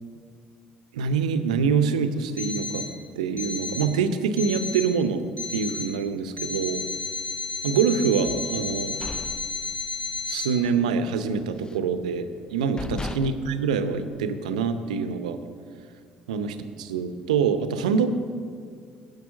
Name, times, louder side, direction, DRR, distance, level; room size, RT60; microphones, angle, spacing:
voice 1, 0.9-2.9 3.2-5.2 5.5-6.8 7.6-9.0 10.3-15.4 16.3-18.1, right 6 dB, 75° right, 10 dB, 0.7 m, -25 dB
Alarm, 2.4-2.9 3.4-3.9 4.4-4.9 5.4-5.9 6.4-10.5, left 3 dB, 40° left, 3.6 m, -32 dB
sound 1, 8.7-10.2 10.6-10.8 11.2-11.9 12.4-12.5 12.8-14.6, left 3 dB, 20° left, 0.5 m, -38 dB
10.5 x 6.9 x 8.3 m, 2.1 s
figure-of-eight pair, 55°, 4 cm